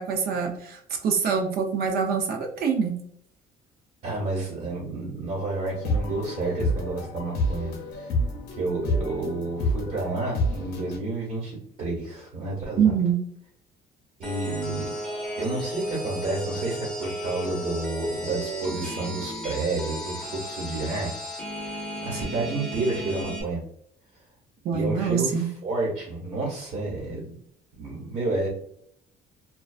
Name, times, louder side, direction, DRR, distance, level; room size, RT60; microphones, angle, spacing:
voice 1, 0.0-3.0 12.8-13.2 24.6-25.5, right 6 dB, 65° right, 3 dB, 0.5 m, -25 dB
voice 2, 4.0-8.2 8.5-12.9 14.2-14.9 15.4-21.1 21.6-23.6 24.7-27.3 27.8-28.5, right 2 dB, 50° right, -4 dB, 1.1 m, -30 dB
Sad kingdom (loopable), 5.6-11.0, left 1 dB, 70° left, 0.6 m, -29 dB
sound 1, 14.2-23.4, right 1 dB, 5° left, 0.8 m, -34 dB
2.3 x 2.3 x 2.3 m, 0.67 s
cardioid pair, 110°, 17 cm